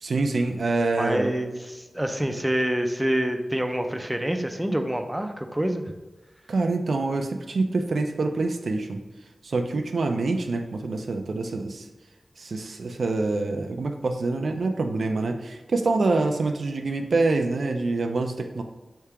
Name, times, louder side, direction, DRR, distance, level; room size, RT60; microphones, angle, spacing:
voice 1, 0.0-1.3 6.5-9.0 9.4-11.9 12.4-18.6, right 3 dB, 85° right, 5 dB, 0.3 m, -26 dB
voice 2, 1.0-5.9, right 1 dB, 10° right, 5 dB, 0.4 m, -27 dB
3.4 x 2.8 x 4.6 m, 1.1 s
wide cardioid pair, 65°, 0 cm